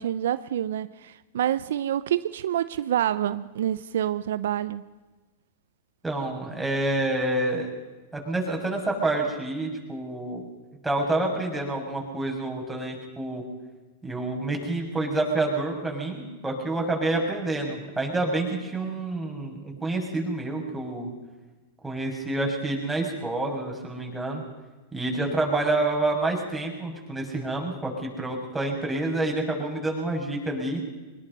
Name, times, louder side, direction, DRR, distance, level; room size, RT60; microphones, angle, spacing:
voice 1, 0.0-4.9, right 11 dB, 75° right, 15 dB, 0.6 m, -27 dB
voice 2, 6.0-7.7 8.1-10.5 10.8-13.4 14.0-21.1 21.8-24.4 24.9-30.8, right 2 dB, 5° right, 0 dB, 6.4 m, -28 dB
23.5 x 20.5 x 5.5 m, 1.2 s
hypercardioid pair, 110°, 0 cm